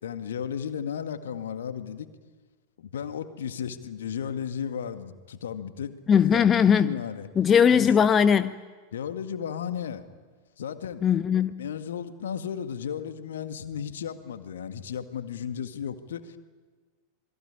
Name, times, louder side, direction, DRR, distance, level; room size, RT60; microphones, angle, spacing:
voice 1, 0.0-2.1 2.8-6.4 6.8-7.3 7.7-8.0 8.9-10.0 10.6-11.0 11.6-16.4, left 8 dB, 65° left, 1.9 m, -34 dB
voice 2, 6.1-7.0 7.4-8.5 11.0-11.6, left 7 dB, 25° left, 0.8 m, -20 dB
27.5 x 21.5 x 9.9 m
figure-of-eight pair, 90°, 0 cm